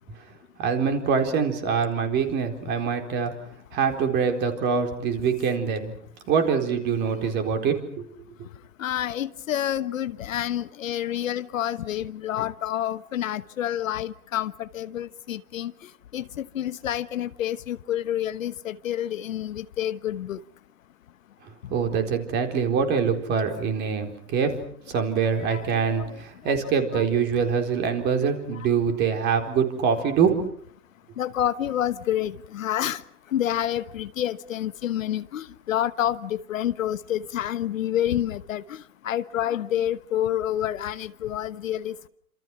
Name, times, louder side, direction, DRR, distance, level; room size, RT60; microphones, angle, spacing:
voice 1, 0.6-3.3 3.7-5.9 6.3-8.1 21.7-24.5 24.9-30.4, right 6 dB, 25° right, 4.2 m, -24 dB
voice 2, 8.8-15.7 16.1-20.4 25.4-26.2 26.9-27.1 31.2-33.0 33.3-38.8 39.0-42.1, left 11 dB, 60° left, 1.3 m, -28 dB
28.5 x 27.0 x 6.1 m
hypercardioid pair, 150°, 44 cm